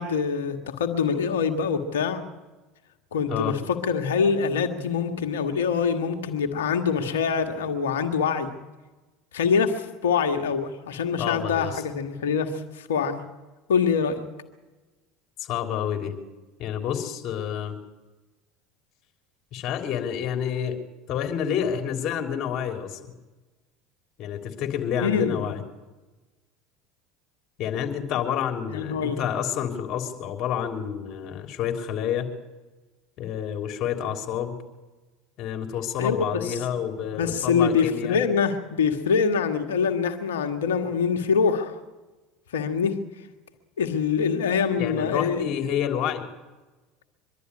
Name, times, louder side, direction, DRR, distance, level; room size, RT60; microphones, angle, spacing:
voice 1, 0.0-2.2 3.1-8.5 9.3-13.2 13.7-14.2 25.0-25.4 28.7-29.2 36.0-36.6 37.1-41.8 42.5-43.0 43.8-45.5, left 6 dB, 90° left, 6 dB, 1.7 m, -24 dB
voice 2, 11.2-11.8 15.4-16.1 16.6-17.8 19.5-20.8 21.1-23.1 24.2-25.6 27.6-32.3 33.2-34.6 35.4-38.2 44.8-46.3, left 9 dB, 55° left, 5 dB, 3.4 m, -29 dB
24.0 x 12.0 x 9.8 m, 1.2 s
hypercardioid pair, 85°, 0 cm